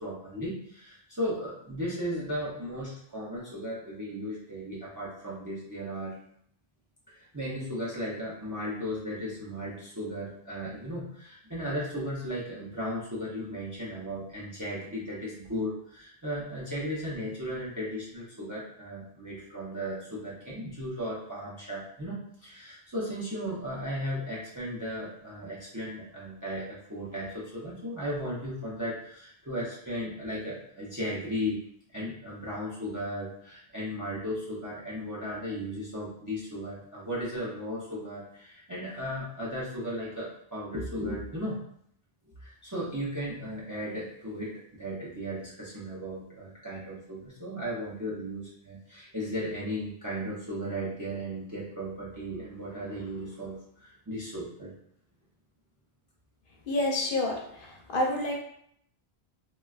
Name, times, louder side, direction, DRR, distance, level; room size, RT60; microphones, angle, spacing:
voice 1, 0.0-6.2 7.1-31.6 31.9-41.6 42.2-54.7, equal, 25° right, -7 dB, 0.4 m, -36 dB
voice 2, 56.7-58.4, left 1 dB, 65° left, 0 dB, 0.7 m, -29 dB
3.2 x 2.3 x 2.3 m, 0.69 s
omnidirectional pair, 1.0 m